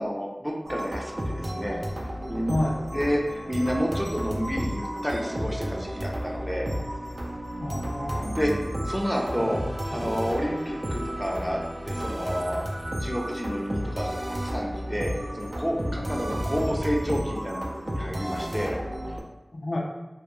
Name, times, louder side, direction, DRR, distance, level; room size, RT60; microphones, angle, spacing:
voice 1, 0.0-1.8 2.3-2.5 2.9-6.7 8.1-8.5 8.8-12.6 13.0-18.8, equal, ahead, -1 dB, 0.5 m, -30 dB
sound 1, 0.6-19.2, equal, 55° right, 0.4 m, -32 dB
voice 2, 2.5-2.8 7.6-8.6 9.4-9.5 9.9-10.1 19.5-19.8, left 1 dB, 75° left, -2 dB, 0.4 m, -30 dB
2.2 x 2.1 x 3.0 m, 0.99 s
wide cardioid pair, 40°, 0 cm